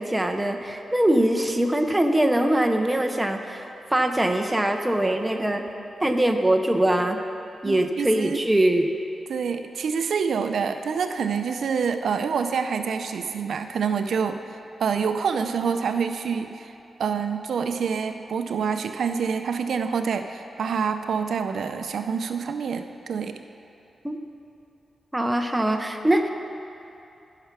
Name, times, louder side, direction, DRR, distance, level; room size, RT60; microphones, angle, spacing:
voice 1, 0.0-5.6 6.0-7.2 7.6-8.9 24.0-24.2 25.1-26.3, right 1 dB, 10° right, 4 dB, 0.6 m, -22 dB
voice 2, 7.6-8.4 9.3-16.7 17.0-23.4, right 6 dB, 70° right, 7 dB, 0.4 m, -27 dB
13.5 x 5.8 x 5.9 m, 2.8 s
wide cardioid pair, 145°, 0 cm